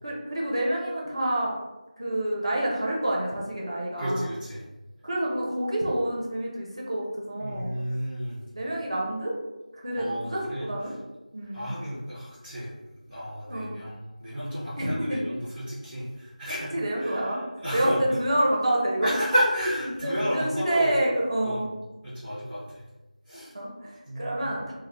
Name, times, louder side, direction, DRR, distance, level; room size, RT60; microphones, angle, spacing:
voice 1, 0.0-1.6 2.0-4.3 5.0-7.7 8.5-9.3 9.7-11.0 11.3-11.7 13.5-13.7 14.8-15.2 16.7-17.4 17.7-19.1 19.9-21.7 23.5-24.7, right 1 dB, 40° right, -4 dB, 0.6 m, -28 dB
voice 2, 4.0-4.6 7.4-8.4 10.0-10.6 11.5-12.7 13.1-16.7 17.0-17.3 17.6-18.0 19.0-20.9 21.4-21.6 22.0-22.6 23.3-23.5 24.1-24.4, equal, ahead, -23 dB, 0.6 m, -31 dB
2.8 x 2.0 x 3.1 m, 1.1 s
figure-of-eight pair, 175°, 4 cm